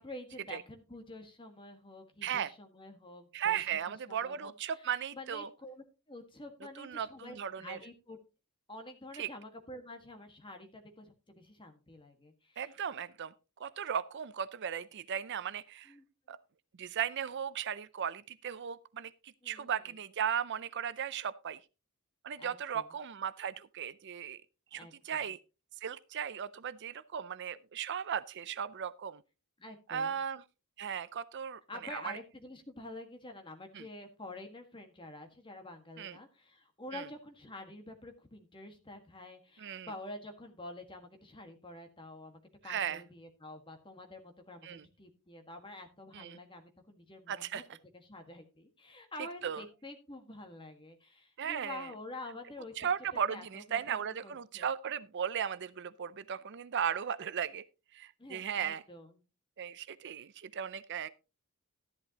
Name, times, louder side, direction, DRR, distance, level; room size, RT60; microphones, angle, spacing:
voice 1, 0.0-8.2 8.7-12.7 15.8-16.0 19.4-19.9 22.4-22.9 24.7-25.3 29.6-30.2 31.7-47.6 47.9-54.7 58.2-59.2, left 1 dB, 20° left, 1.6 m, -48 dB
voice 2, 3.3-5.5 6.8-7.8 9.2-9.3 12.6-13.3 13.6-15.9 16.3-16.4 16.8-21.6 22.2-24.4 24.7-25.4 25.8-29.2 29.9-30.4 30.8-31.6 31.9-32.1 33.7-33.9 36.0-36.2 36.9-37.1 39.6-39.9 42.6-43.0 44.6-44.8 46.1-46.4 47.3-47.6 49.4-49.6 51.4-51.9 52.8-57.6 57.9-58.8 59.6-61.1, right 8 dB, 50° right, 0.5 m, -36 dB
13.0 x 11.0 x 2.9 m
head